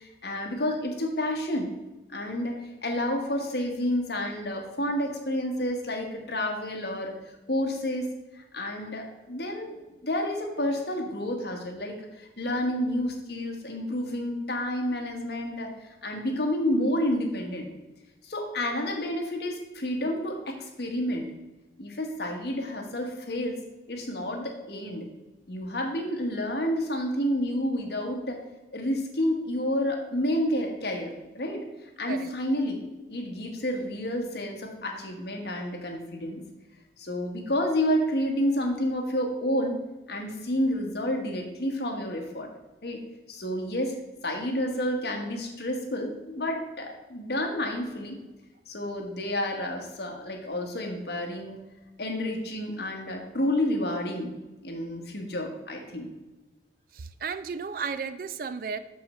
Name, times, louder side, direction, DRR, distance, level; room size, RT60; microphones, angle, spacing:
voice 1, 0.0-1.7 2.1-7.2 7.5-8.1 8.3-17.7 18.2-21.3 21.8-23.6 23.9-25.1 25.5-28.4 28.7-32.8 33.1-36.4 37.0-39.8 40.1-42.5 42.8-43.0 43.3-44.0 44.2-48.2 48.7-51.6 52.0-54.3 54.6-56.1, left 1 dB, 65° left, 2 dB, 1.3 m, -30 dB
voice 2, 56.9-58.8, right 5 dB, 50° right, 12 dB, 0.4 m, -34 dB
6.5 x 5.5 x 4.3 m, 1.1 s
head